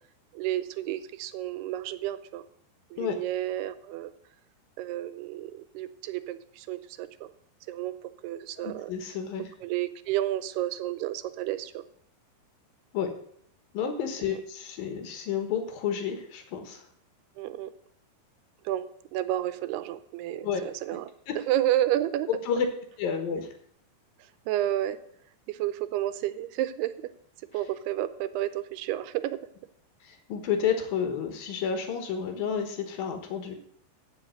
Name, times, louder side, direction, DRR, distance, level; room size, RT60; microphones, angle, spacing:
voice 1, 0.3-2.4 2.9-4.1 4.8-7.3 7.7-8.9 9.6-11.8 14.2-14.4 17.4-17.7 18.6-18.9 19.1-21.1 21.5-22.3 24.5-25.0 25.5-26.9 27.5-29.4, right 13 dB, 85° right, 13 dB, 2.7 m, -31 dB
voice 2, 8.6-9.5 12.9-13.1 13.7-16.8 20.4-20.6 20.9-21.0 21.3-21.4 22.3-22.7 23.0-23.5 30.0-33.6, left 7 dB, 70° left, 6 dB, 2.9 m, -30 dB
14.5 x 5.2 x 7.7 m, 0.65 s
omnidirectional pair, 4.6 m